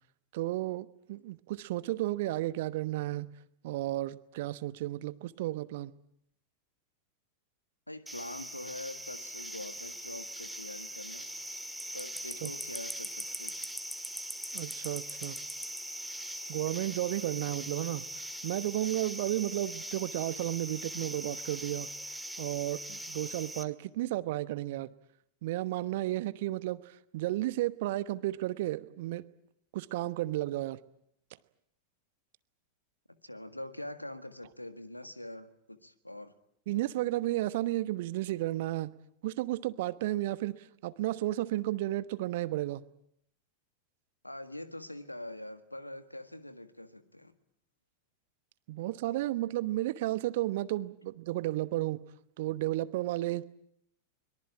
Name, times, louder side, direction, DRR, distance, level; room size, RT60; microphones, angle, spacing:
voice 1, 0.3-3.3 3.6-5.9 12.4-12.5 14.5-15.4 16.5-18.1 18.4-21.9 22.4-24.9 25.4-29.2 29.7-30.8 36.7-38.9 39.2-42.8 48.7-52.0 52.4-53.4, right 16 dB, 50° right, 16 dB, 1.1 m, -33 dB
voice 2, 7.9-11.3 11.9-13.6 33.2-36.3 44.2-47.3, left 1 dB, 85° left, 11 dB, 1.8 m, -44 dB
sound 1, 8.1-23.6, right 1 dB, ahead, 1.9 m, -41 dB
24.0 x 22.5 x 8.7 m, 0.72 s
figure-of-eight pair, 90°, 0 cm